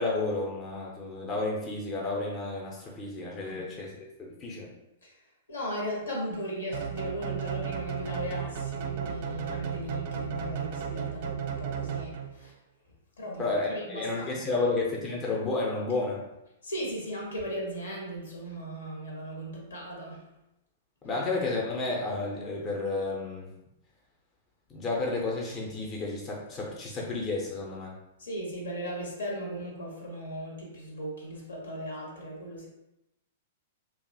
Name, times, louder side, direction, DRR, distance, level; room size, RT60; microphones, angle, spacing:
voice 1, 0.0-4.7 13.4-16.2 21.0-23.5 24.7-27.9, left 3 dB, 25° left, -2 dB, 0.6 m, -31 dB
voice 2, 5.5-12.5 13.2-14.4 16.6-20.3 21.1-21.2 28.2-32.7, equal, 75° left, -2 dB, 0.9 m, -37 dB
sound 1, 6.7-12.5, right 8 dB, 50° right, 0.4 m, -34 dB
2.8 x 2.3 x 2.6 m, 0.91 s
figure-of-eight pair, 105°, 0 cm